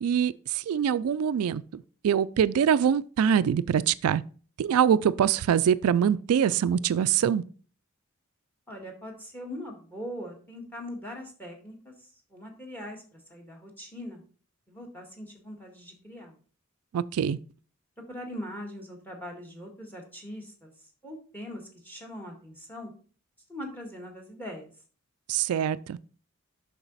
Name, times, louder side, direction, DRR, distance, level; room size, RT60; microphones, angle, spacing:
voice 1, 0.0-4.2 4.6-7.4 16.9-17.4 25.3-26.0, right 8 dB, 80° right, 0.3 m, -24 dB
voice 2, 8.7-11.9 12.3-14.2 14.7-16.4 18.1-20.7 21.0-22.9 23.5-24.7, equal, 10° left, 1.8 m, -41 dB
7.0 x 5.9 x 4.0 m
head